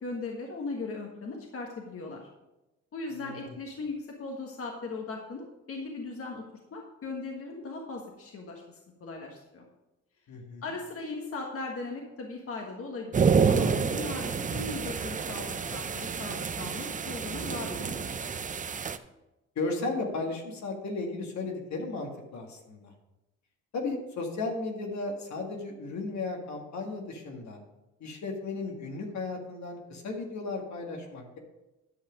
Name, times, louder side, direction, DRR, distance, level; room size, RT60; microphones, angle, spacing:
voice 1, 0.0-2.3 2.9-6.4 6.7-9.6 10.6-18.1, left 3 dB, 50° left, 1 dB, 1.5 m, -38 dB
voice 2, 3.1-3.5 10.3-10.6 19.6-22.9 23.7-27.6 28.0-31.4, left 3 dB, 65° left, 1 dB, 1.9 m, -35 dB
sound 1, 13.1-19.0, right 6 dB, 25° right, 0.5 m, -28 dB
10.5 x 5.8 x 5.2 m, 0.98 s
cardioid pair, 90°, 30 cm